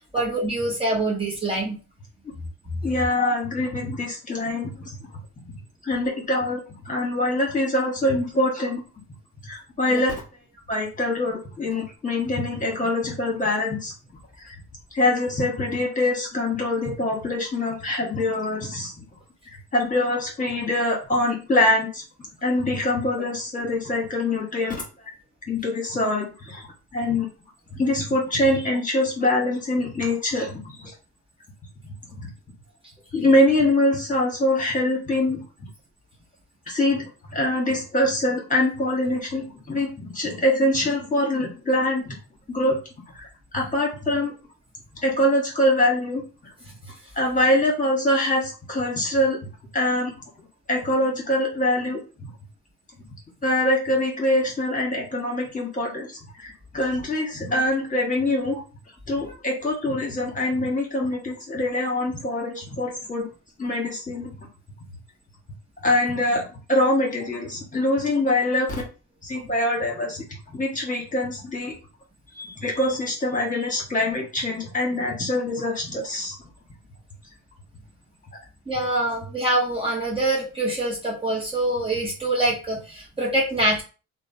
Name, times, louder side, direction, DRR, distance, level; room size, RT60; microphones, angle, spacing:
voice 1, 0.1-1.8 3.2-3.3 9.9-10.0 59.2-59.3 78.7-83.8, right 1 dB, 20° right, -4 dB, 0.9 m, -25 dB
voice 2, 2.8-4.9 5.8-8.8 9.4-10.1 10.7-13.9 14.4-14.6 14.9-18.9 19.5-22.0 22.4-24.8 25.5-26.7 26.9-27.3 27.7-30.9 32.2-32.3 33.1-35.4 36.7-42.2 42.5-42.8 43.1-43.3 43.5-44.3 45.0-46.2 47.1-49.4 49.7-50.1 50.7-52.3 53.4-58.6 59.1-63.3 63.6-64.4 65.8-68.7 69.2-70.2 70.5-71.7 72.3-76.4, left 1 dB, 25° left, -1 dB, 1.3 m, -24 dB
2.8 x 2.2 x 2.7 m, 0.34 s
cardioid pair, 90°, 30 cm